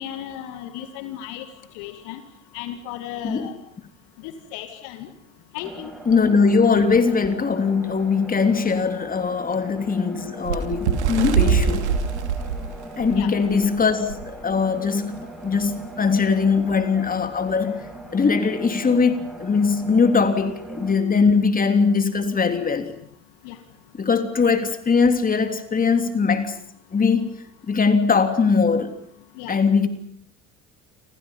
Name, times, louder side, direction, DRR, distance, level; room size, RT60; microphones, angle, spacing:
voice 1, 0.0-1.5 1.7-2.2 2.5-3.5 4.2-5.1 5.5-5.9 13.2-13.3 23.4-23.6 29.4-29.6, left 11 dB, 60° left, 2.2 m, -35 dB
sound 1, 5.6-20.9, right 1 dB, ahead, 6.6 m, -40 dB
voice 2, 6.1-11.9 13.0-17.9 18.1-22.9 24.0-26.6 26.9-27.4 27.7-28.9 29.5-29.9, left 5 dB, 25° left, 3.3 m, -21 dB
Bird, 10.4-13.6 14.1-14.3 14.5-14.8 15.6-15.7, right 7 dB, 70° right, 2.7 m, -23 dB
29.5 x 26.5 x 5.6 m
figure-of-eight pair, 60°, 35 cm